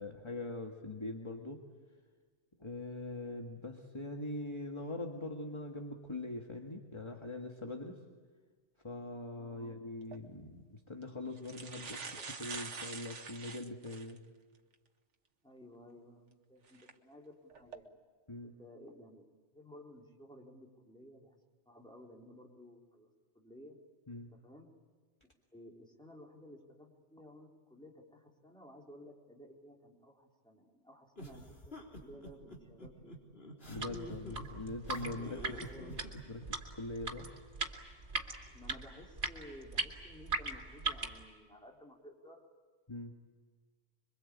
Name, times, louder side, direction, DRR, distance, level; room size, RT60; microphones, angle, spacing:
voice 1, 0.0-1.6 2.6-8.0 8.8-14.2 18.3-18.5 24.1-24.3 33.7-35.9 36.3-37.3 42.9-43.1, left 2 dB, 25° left, 3 dB, 1.8 m, -42 dB
voice 2, 9.4-9.8 11.9-12.4 15.4-18.0 18.4-19.3 19.5-21.4 21.7-23.8 24.4-24.7 25.5-33.2 35.6-36.1 38.5-42.4, equal, 5° left, -1 dB, 4.1 m, -55 dB
sound 1, 10.0-10.2 11.0-11.1 11.4-14.2 14.7-14.8 16.7-16.9 17.5-17.8, right 4 dB, 90° right, 1.8 m, -45 dB
sound 2, 31.2-36.5, equal, 55° left, 4.3 m, -47 dB
sound 3, 33.6-41.2, right 3 dB, 70° right, 3.0 m, -40 dB
26.5 x 24.0 x 8.6 m, 1.5 s
omnidirectional pair, 1.2 m